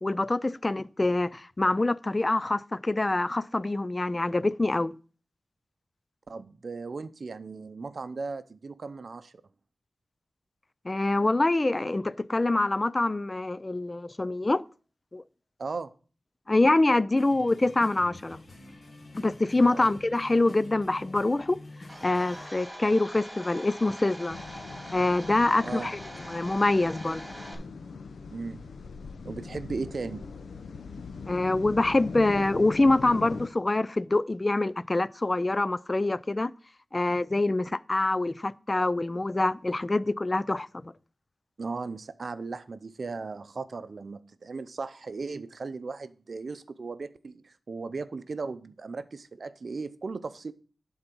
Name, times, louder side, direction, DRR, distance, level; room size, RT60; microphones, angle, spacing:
voice 1, 0.0-4.9 10.8-14.6 15.1-15.2 16.5-18.4 19.2-21.6 22.0-24.4 24.9-26.0 26.3-27.2 31.3-36.5 36.9-40.9, left 2 dB, 25° left, 0.3 m, -25 dB
voice 2, 6.3-9.3 15.6-15.9 19.6-19.9 25.6-25.9 28.3-28.6 29.2-30.3 41.6-50.5, right 4 dB, 55° right, 0.6 m, -37 dB
sound 1, 17.2-22.5, left 2 dB, 50° left, 1.4 m, -48 dB
Domestic sounds home sounds, 21.9-27.6, equal, 10° right, 2.8 m, -43 dB
sound 2, 24.3-33.5, left 4 dB, 85° left, 0.6 m, -41 dB
11.5 x 3.9 x 6.0 m
wide cardioid pair, 110°, 0 cm